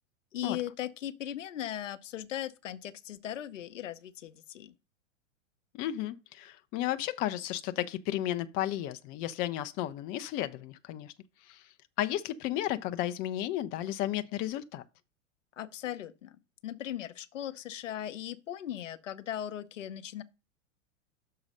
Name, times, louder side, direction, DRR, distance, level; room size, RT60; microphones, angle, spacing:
voice 1, 0.3-4.7 15.6-20.2, left 11 dB, 70° left, 0.8 m, -38 dB
voice 2, 5.7-11.1 11.4-14.8, left 13 dB, 25° left, 0.4 m, -33 dB
6.5 x 4.8 x 5.3 m
hypercardioid pair, 100°, 38 cm